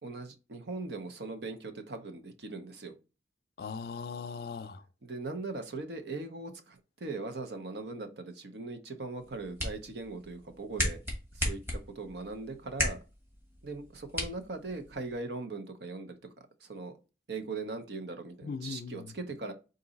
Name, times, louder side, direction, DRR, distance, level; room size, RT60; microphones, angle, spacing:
voice 1, 0.0-2.9 5.0-11.0 11.3-13.0 13.6-16.2 16.6-16.9 17.3-19.5, right 3 dB, 70° right, 0.7 m, -40 dB
voice 2, 3.6-4.8 18.4-19.2, left 5 dB, 60° left, 0.3 m, -39 dB
sound 1, 9.2-15.2, left 1 dB, 10° right, 1.2 m, -37 dB
3.9 x 2.6 x 3.9 m
head